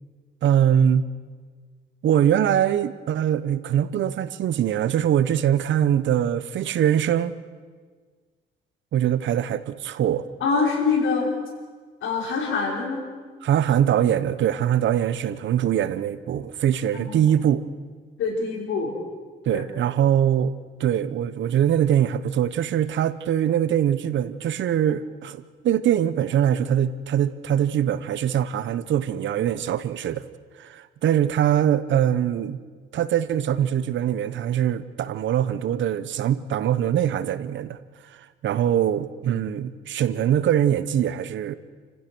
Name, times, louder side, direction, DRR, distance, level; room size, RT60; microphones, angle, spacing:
voice 1, 0.4-1.1 2.0-7.4 8.9-10.2 13.4-17.6 19.4-20.5 20.8-30.2 30.6-32.6 32.9-37.8 38.4-41.5, right 10 dB, 70° right, 1.1 m, -22 dB
voice 2, 10.4-11.3 12.0-13.0 17.1-17.3 18.2-18.9 19.5-19.6 39.3-39.4, left 4 dB, 75° left, 5.7 m, -24 dB
30.0 x 15.5 x 6.3 m
cardioid pair, 90°, 20 cm